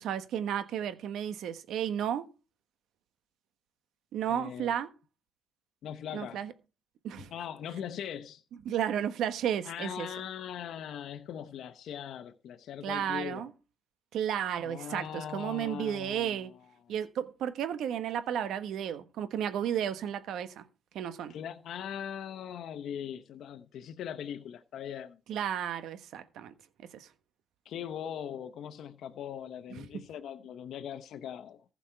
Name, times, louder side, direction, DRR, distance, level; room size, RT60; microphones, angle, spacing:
voice 1, 0.0-2.3 4.1-4.9 6.1-6.5 7.0-7.3 8.6-10.1 12.8-13.5 14.1-16.5 16.9-20.6 20.9-21.3 25.3-26.5 26.9-27.1 29.8-30.0, right 9 dB, 80° right, 1.2 m, -33 dB
voice 2, 4.3-4.7 5.8-6.4 7.2-8.4 9.6-13.5 14.6-16.5 21.3-25.2 27.6-31.6, left 9 dB, 75° left, 0.9 m, -40 dB
15.0 x 6.0 x 4.5 m
cardioid pair, 90°, 0 cm